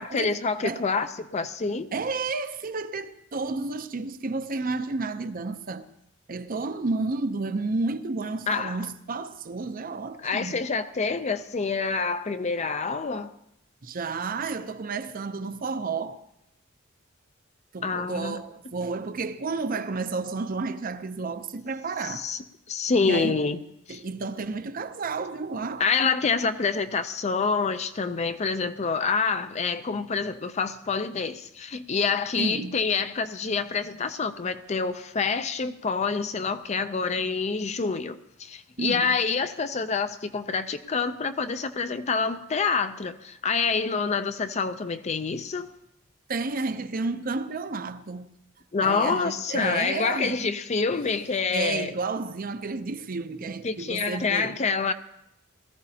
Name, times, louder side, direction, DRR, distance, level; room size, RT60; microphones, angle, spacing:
voice 1, 0.0-1.9 8.5-8.8 10.2-13.3 17.8-18.4 22.0-22.4 22.7-23.6 23.9-24.0 25.8-45.7 48.7-51.9 53.6-54.9, left 5 dB, 30° left, 0.5 m, -27 dB
voice 2, 1.9-5.9 6.3-10.7 13.8-16.2 17.7-22.3 23.0-23.4 23.9-25.8 32.4-32.8 38.8-39.2 46.3-48.3 48.8-50.4 51.5-54.6, right 3 dB, 40° right, 0.6 m, -31 dB
19.5 x 14.0 x 2.8 m
head